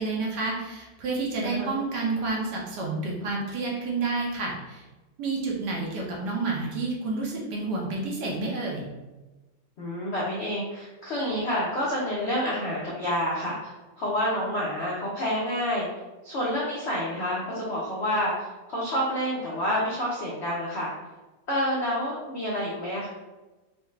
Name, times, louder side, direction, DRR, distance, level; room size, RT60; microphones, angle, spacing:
voice 1, 0.0-4.8 5.2-8.9, right 3 dB, 65° right, -2 dB, 1.2 m, -29 dB
voice 2, 1.4-1.7 9.8-15.9 16.2-20.9 21.5-23.1, equal, 85° left, -5 dB, 0.5 m, -28 dB
4.7 x 2.1 x 3.2 m, 1.1 s
omnidirectional pair, 2.1 m